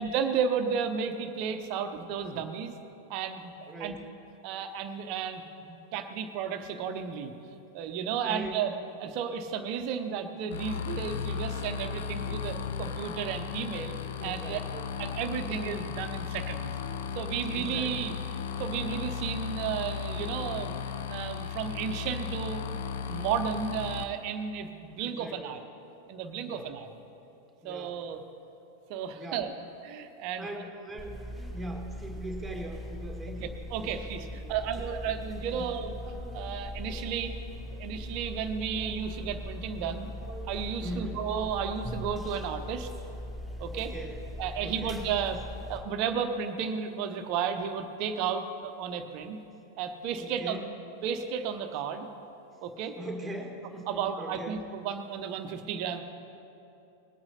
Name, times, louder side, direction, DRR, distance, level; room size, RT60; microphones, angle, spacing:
voice 1, 0.0-2.7 3.1-4.0 4.4-7.3 7.7-8.7 9.0-14.6 15.0-16.7 17.1-18.1 18.6-20.8 21.1-22.6 23.1-25.6 26.1-26.9 27.6-28.2 28.9-29.5 29.8-30.5 33.4-35.9 36.3-37.4 37.8-40.1 40.5-42.9 43.6-43.9 44.4-45.4 45.7-49.4 49.8-50.6 51.0-52.1 52.6-53.0 53.9-56.0, right 7 dB, 45° right, 8 dB, 0.8 m, -33 dB
voice 2, 3.7-4.1 8.2-8.6 14.2-15.3 17.5-18.2 25.0-25.6 26.5-26.7 27.6-28.0 29.1-29.5 30.4-35.1 35.5-35.7 40.8-41.3 43.7-44.2 44.6-45.0 50.2-50.7 53.0-54.6, right 1 dB, 10° right, 1 dB, 1.8 m, -41 dB
sound 1, 10.5-24.0, left 7 dB, 60° left, 0.6 m, -35 dB
sound 2, 31.0-45.8, left 1 dB, 10° left, 3.2 m, -40 dB
21.0 x 8.8 x 4.3 m, 2.9 s
figure-of-eight pair, 90°, 0 cm